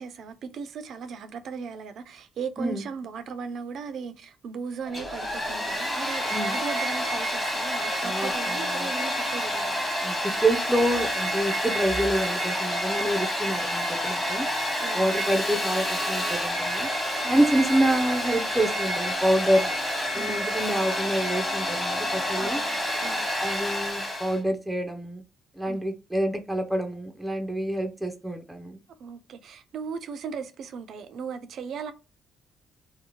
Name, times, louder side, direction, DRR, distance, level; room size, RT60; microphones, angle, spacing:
voice 1, 0.0-9.8 14.8-15.2 17.2-17.4 20.1-20.5 22.4-23.2 25.7-25.9 29.0-31.9, right 6 dB, 65° right, 0.4 m, -37 dB
Domestic sounds home sounds, 4.8-24.4, equal, 20° left, 1.2 m, -28 dB
voice 2, 8.0-8.9 10.0-14.5 14.9-16.9 17.3-19.8 20.1-22.6 23.4-25.2 25.6-28.8, right 1 dB, 5° right, 0.4 m, -27 dB
2.7 x 2.0 x 2.7 m
cardioid pair, 90°, 0 cm